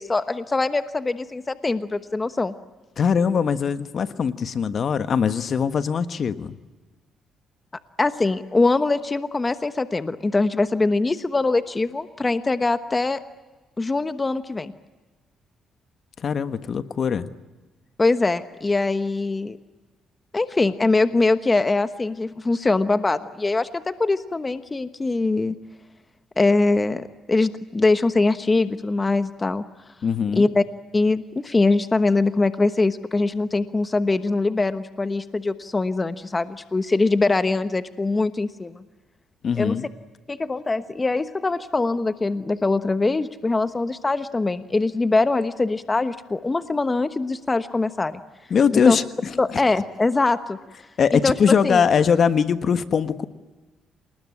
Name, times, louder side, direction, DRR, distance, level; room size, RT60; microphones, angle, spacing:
voice 1, 0.0-2.5 8.0-13.2 13.8-14.7 18.0-19.6 20.3-25.5 26.4-29.6 30.4-30.6 30.9-38.8 39.6-39.8 40.3-48.2 48.7-49.0 49.4-50.6 51.1-51.3 51.6-51.8, left 3 dB, 25° left, 11 dB, 1.1 m, -22 dB
voice 2, 3.0-6.6 16.2-17.3 30.0-30.5 39.4-39.9 48.5-49.4 51.0-53.2, left 6 dB, 55° left, 11 dB, 1.3 m, -21 dB
28.0 x 20.0 x 9.8 m, 1.3 s
cardioid pair, 90°, 0 cm